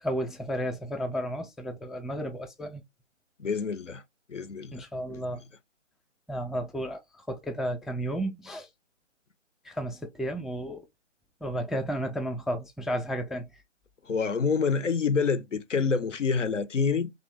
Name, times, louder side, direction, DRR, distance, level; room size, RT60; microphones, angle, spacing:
voice 1, 0.0-2.8 4.7-5.4 6.3-8.7 9.6-10.9 11.4-13.5, equal, ahead, 0.3 m, -33 dB
voice 2, 3.4-4.0 4.3-4.9 14.0-17.1, left 5 dB, 70° left, 0.5 m, -27 dB
2.6 x 2.4 x 3.0 m
figure-of-eight pair, 175°, 38 cm